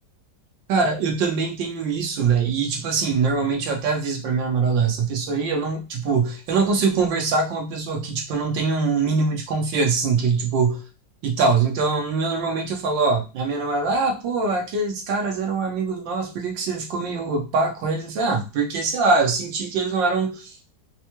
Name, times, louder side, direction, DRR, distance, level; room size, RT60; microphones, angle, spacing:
voice 1, 0.7-10.8 11.2-20.8, right 4 dB, 80° right, 2 dB, 1.6 m, -23 dB
4.5 x 2.2 x 3.0 m, 0.30 s
omnidirectional pair, 2.0 m